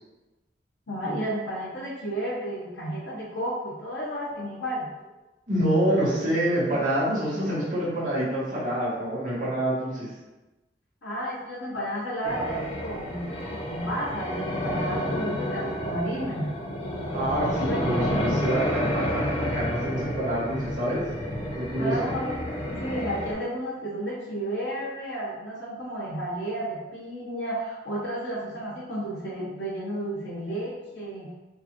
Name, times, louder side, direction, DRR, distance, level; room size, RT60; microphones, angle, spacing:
voice 1, 0.9-4.9 11.0-16.5 17.6-18.9 21.8-31.3, right 1 dB, 80° left, -6 dB, 0.9 m, -32 dB
voice 2, 5.5-10.1 17.1-21.0 21.5-21.9, right 1 dB, 45° right, -9 dB, 1.4 m, -26 dB
sound 1, 12.2-23.3, equal, 30° left, 0.7 m, -30 dB
4.6 x 2.4 x 2.9 m, 1.1 s
head